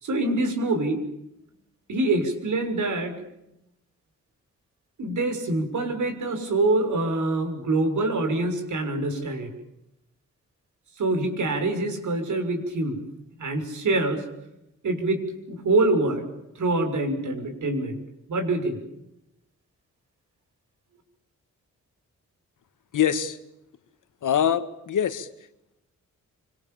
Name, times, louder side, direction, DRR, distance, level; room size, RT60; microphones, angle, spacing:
voice 1, 0.0-1.0 1.9-3.1 5.0-9.5 11.0-13.0 13.4-14.2 14.8-16.2 16.5-18.0 18.3-18.8, right 2 dB, 75° right, 6 dB, 6.6 m, -25 dB
voice 2, 22.9-23.4 24.2-25.3, left 9 dB, 85° left, 11 dB, 2.0 m, -24 dB
26.0 x 26.0 x 7.3 m, 0.85 s
wide cardioid pair, 115°, 30 cm